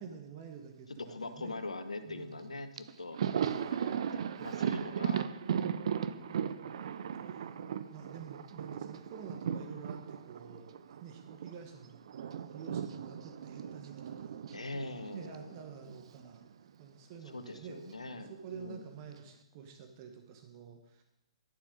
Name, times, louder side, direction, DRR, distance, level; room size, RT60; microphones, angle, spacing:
voice 1, 0.0-1.6 2.0-2.6 4.4-4.8 7.3-7.5 7.9-12.0 12.5-14.4 15.1-16.4 16.8-17.9 18.3-21.0, right 7 dB, 40° right, 5 dB, 1.2 m, -49 dB
voice 2, 1.0-5.3 5.9-6.5 14.5-15.5 17.3-18.8, left 2 dB, 80° left, 9 dB, 1.0 m, -43 dB
Thunder, 2.4-2.5 2.8-11.6 11.8-16.2 16.4-16.6 17.7-18.4, right 8 dB, 55° right, 0.6 m, -37 dB
12.0 x 7.2 x 5.2 m, 0.95 s
figure-of-eight pair, 120°, 3 cm